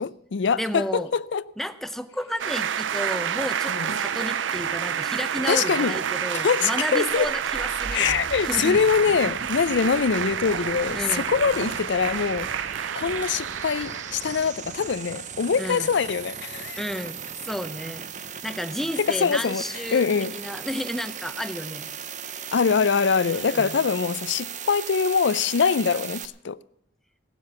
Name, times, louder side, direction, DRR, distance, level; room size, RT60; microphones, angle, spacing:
voice 1, 0.0-1.4 3.7-4.0 5.5-6.0 6.3-7.3 7.9-12.5 13.0-16.8 19.0-19.6 19.9-20.3 22.5-26.6, left 6 dB, 70° left, 0.5 m, -24 dB
voice 2, 0.6-1.1 1.6-8.8 10.9-11.3 15.6-15.9 16.8-17.2 17.4-18.1 18.4-21.9 23.3-23.8, equal, ahead, 0.6 m, -32 dB
sound 1, 2.4-14.5, right 8 dB, 80° right, 0.5 m, -29 dB
sound 2, 7.1-26.3, right 7 dB, 40° right, 0.7 m, -38 dB
17.5 x 7.6 x 8.4 m
head